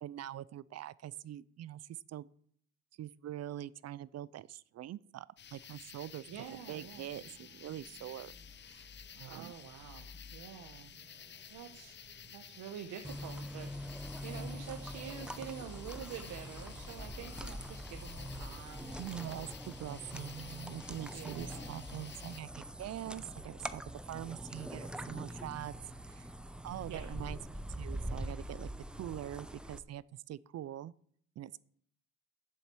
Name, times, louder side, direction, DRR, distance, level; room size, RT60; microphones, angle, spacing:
voice 1, 0.0-2.3 3.0-5.3 5.5-6.3 6.7-8.3 8.6-8.9 9.2-9.5 19.0-25.7 26.1-26.3 26.6-28.7 29.0-30.9 31.4-31.6, right 12 dB, 55° right, 20 dB, 0.5 m, -44 dB
sound 1, 5.4-22.4, left 7 dB, 35° left, 0.6 m, -51 dB
voice 2, 6.3-7.0 9.3-11.2 11.5-12.0 12.3-13.7 14.2-19.1 19.9-20.0 21.1-21.8 26.9-27.1, right 9 dB, 80° right, 5 dB, 1.1 m, -47 dB
sound 2, 6.5-25.7, right 3 dB, 20° right, 2.9 m, -65 dB
sound 3, 13.0-29.8, equal, 5° right, 0.7 m, -44 dB
7.8 x 7.3 x 8.4 m, 0.63 s
cardioid pair, 90°, 30 cm